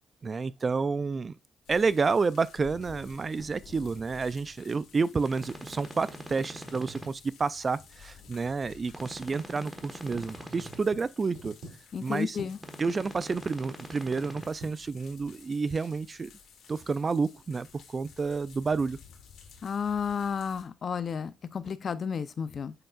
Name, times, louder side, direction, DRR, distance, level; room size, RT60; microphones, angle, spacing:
voice 1, 0.2-1.3 1.7-11.6 12.0-12.4 12.8-16.3 16.7-19.0, right 4 dB, 35° right, 0.3 m, -30 dB
sound 1, 1.6-20.6, left 7 dB, 75° left, 1.5 m, -53 dB
sound 2, 5.2-7.1 8.9-10.8 12.6-14.4, equal, 5° right, 1.3 m, -43 dB
sound 3, 9.9-15.8, right 1 dB, 80° right, 2.2 m, -50 dB
voice 2, 11.9-12.6 19.6-22.7, left 6 dB, 50° left, 0.6 m, -32 dB
7.9 x 5.5 x 2.4 m
cardioid pair, 90°, 0 cm